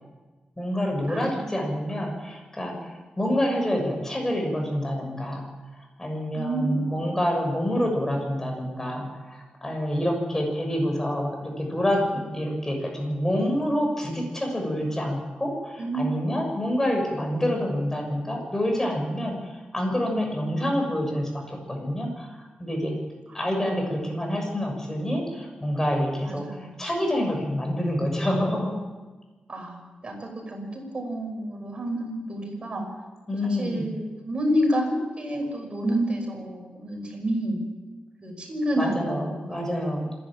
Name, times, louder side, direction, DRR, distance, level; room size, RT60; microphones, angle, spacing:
voice 1, 0.6-2.9 3.2-5.5 6.0-22.9 23.3-28.7 33.3-33.8 38.8-40.1, equal, 15° left, 1 dB, 6.7 m, -27 dB
voice 2, 1.1-1.5 6.3-7.1 15.8-16.3 23.3-23.8 26.2-26.8 29.5-29.8 30.0-32.8 33.4-37.6 38.2-39.7, equal, 35° right, 2 dB, 6.3 m, -29 dB
26.5 x 11.5 x 8.9 m, 1.3 s
wide cardioid pair, 115°, 3 cm